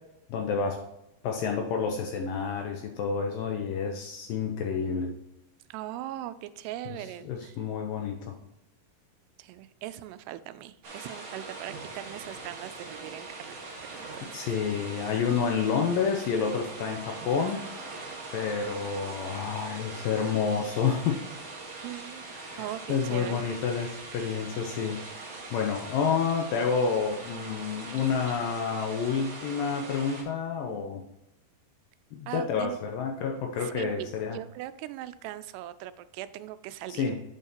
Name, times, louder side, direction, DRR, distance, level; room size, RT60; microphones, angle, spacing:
voice 1, 0.3-0.8 1.2-5.1 6.9-7.0 7.2-8.4 14.3-17.6 18.3-21.2 22.3-31.0 32.1-34.4 36.9-37.2, left 6 dB, 80° left, 3 dB, 2.1 m, -29 dB
voice 2, 5.7-7.6 9.4-13.6 13.9-14.4 21.8-23.5 32.3-32.8 33.6-37.1, right 13 dB, 85° right, 13 dB, 2.6 m, -40 dB
sound 1, 10.8-30.2, right 3 dB, 45° right, 1.7 m, -42 dB
8.6 x 7.2 x 2.9 m, 0.87 s
omnidirectional pair, 4.7 m